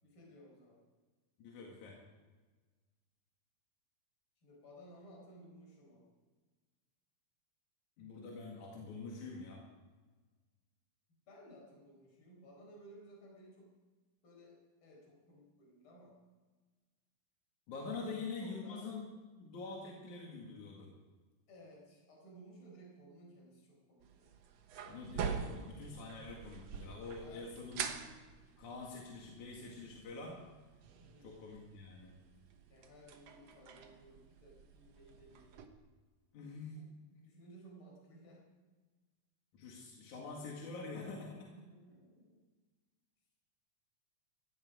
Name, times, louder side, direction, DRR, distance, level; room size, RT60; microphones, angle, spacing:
voice 1, 0.0-0.8 4.4-6.1 11.1-13.8 14.2-16.2 18.0-18.9 21.5-24.3 27.0-27.5 31.0-31.4 32.7-35.7 36.8-38.5 41.5-42.4, right 1 dB, 40° left, -1 dB, 5.2 m, -58 dB
voice 2, 1.4-2.0 8.0-9.7 17.7-19.0 19.4-20.9 24.9-27.8 28.6-30.4 31.2-32.2 36.3-36.8 39.5-41.5, left 4 dB, 75° left, -2 dB, 3.5 m, -46 dB
sound 1, 24.0-35.7, right 6 dB, 60° right, 2.1 m, -46 dB
17.5 x 14.5 x 5.0 m, 1.3 s
omnidirectional pair, 3.5 m